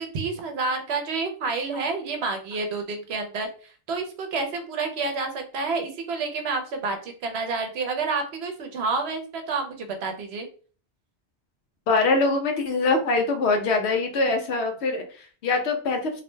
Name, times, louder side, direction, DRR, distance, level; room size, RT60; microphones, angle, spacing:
voice 1, 0.0-10.5, right 4 dB, 70° right, 5 dB, 0.8 m, -29 dB
voice 2, 11.9-16.2, left 3 dB, 75° left, 5 dB, 0.9 m, -23 dB
2.6 x 2.1 x 3.1 m, 0.39 s
omnidirectional pair, 1.2 m